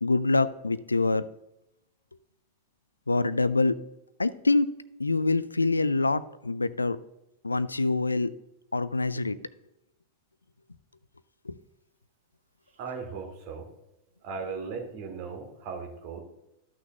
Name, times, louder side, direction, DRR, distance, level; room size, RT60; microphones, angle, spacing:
voice 1, 0.0-1.3 3.1-3.8 4.2-4.7 5.0-7.0 7.4-8.3 8.7-9.4 11.4-11.6, left 3 dB, 80° left, 17 dB, 0.4 m, -25 dB
voice 2, 12.8-13.7 14.2-16.2, right 5 dB, 45° right, 3 dB, 1.8 m, -37 dB
13.5 x 6.2 x 2.5 m, 0.89 s
figure-of-eight pair, 90°, 0 cm